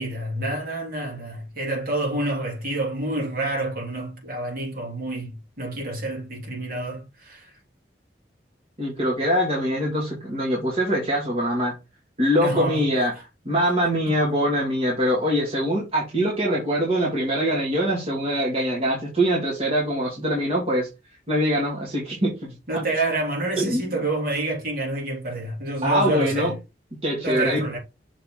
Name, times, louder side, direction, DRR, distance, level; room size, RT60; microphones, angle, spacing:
voice 1, 0.0-7.5 12.3-12.8 14.1-14.2 22.7-26.5 27.2-27.8, right 2 dB, 55° right, 3.5 m, -28 dB
voice 2, 8.8-11.7 12.2-13.1 13.4-20.9 21.3-22.5 23.6-24.0 25.8-26.5 27.0-27.6, equal, 35° right, 2.4 m, -23 dB
6.6 x 4.3 x 3.9 m
head